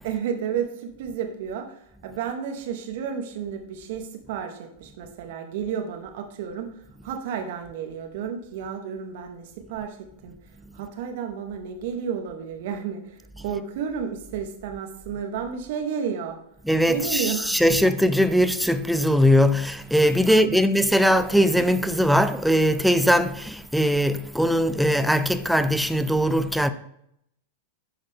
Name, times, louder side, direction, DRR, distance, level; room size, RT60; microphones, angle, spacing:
voice 1, 0.0-16.4 16.9-17.8 20.3-20.7, right 7 dB, 55° right, 1.2 m, -32 dB
voice 2, 16.6-26.7, equal, ahead, 0.5 m, -20 dB
11.0 x 4.0 x 3.6 m
figure-of-eight pair, 95°, 0 cm